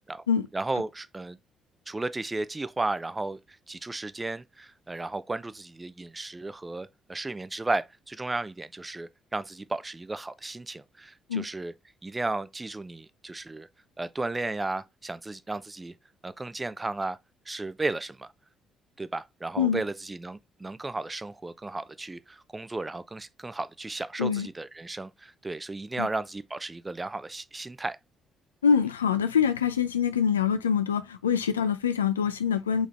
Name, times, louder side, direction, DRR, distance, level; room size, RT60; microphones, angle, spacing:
voice 1, 0.5-1.4 1.9-3.4 3.7-11.7 12.0-13.7 14.0-15.9 16.2-17.2 17.5-18.3 19.0-28.0, right 2 dB, 20° right, 0.5 m, -34 dB
voice 2, 28.6-32.9, left 7 dB, 80° left, 0.4 m, -25 dB
5.2 x 3.9 x 2.5 m
figure-of-eight pair, 45°, 0 cm